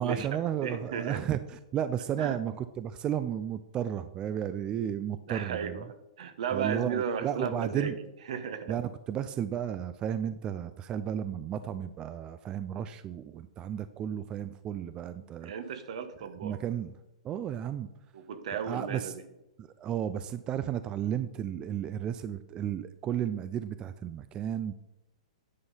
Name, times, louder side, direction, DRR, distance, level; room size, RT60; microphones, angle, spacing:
voice 1, 0.0-5.8 6.5-8.0 8.7-15.5 16.2-17.0 17.2-17.9 18.5-19.1 19.6-24.7, right 9 dB, 25° right, 12 dB, 0.4 m, -33 dB
voice 2, 0.6-1.2 2.2-2.4 5.3-7.9 8.3-8.8 15.4-16.6 18.1-19.2, right 7 dB, 65° right, 10 dB, 1.2 m, -34 dB
9.8 x 5.4 x 5.6 m, 0.93 s
hypercardioid pair, 135°, 4 cm